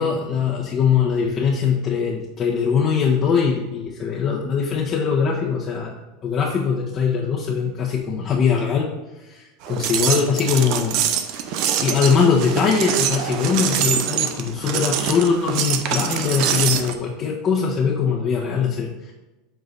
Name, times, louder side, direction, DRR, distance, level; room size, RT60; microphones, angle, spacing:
voice 1, 0.0-6.0 6.2-8.9 9.2-11.0 11.5-19.1, left 6 dB, 40° left, -4 dB, 1.2 m, -21 dB
sound 1, 9.6-16.9, right 8 dB, 60° right, 0.7 m, -24 dB
8.2 x 3.9 x 4.0 m, 1.1 s
hypercardioid pair, 90°, 0 cm